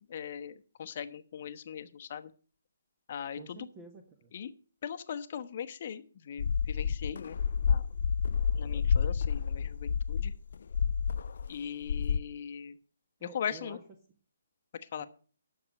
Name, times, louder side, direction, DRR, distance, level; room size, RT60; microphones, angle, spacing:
voice 1, 0.1-2.3 3.1-3.7 4.3-4.5 4.8-7.9 8.5-10.3 11.5-12.8 13.2-13.8 14.8-15.1, left 8 dB, 45° left, 9 dB, 1.0 m, -40 dB
voice 2, 3.4-4.3 8.4-8.8 13.2-13.8 15.0-15.1, right 4 dB, 25° right, 4 dB, 1.5 m, -51 dB
sound 1, 6.4-11.6 11.8-12.2, left 6 dB, 60° left, 0.4 m, -29 dB
11.0 x 6.7 x 6.4 m, 0.40 s
figure-of-eight pair, 145°, 0 cm